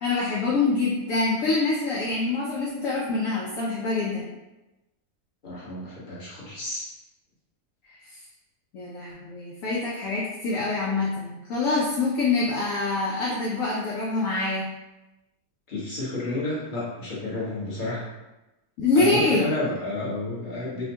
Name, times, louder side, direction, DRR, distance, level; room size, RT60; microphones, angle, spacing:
voice 1, 0.0-4.3 8.1-8.2 8.7-14.7 18.8-19.5, left 3 dB, 70° left, -4 dB, 0.8 m, -25 dB
voice 2, 5.4-6.9 15.7-18.0 18.9-20.8, left 2 dB, 35° left, -7 dB, 1.1 m, -31 dB
4.3 x 2.1 x 2.7 m, 1.0 s
omnidirectional pair, 1.7 m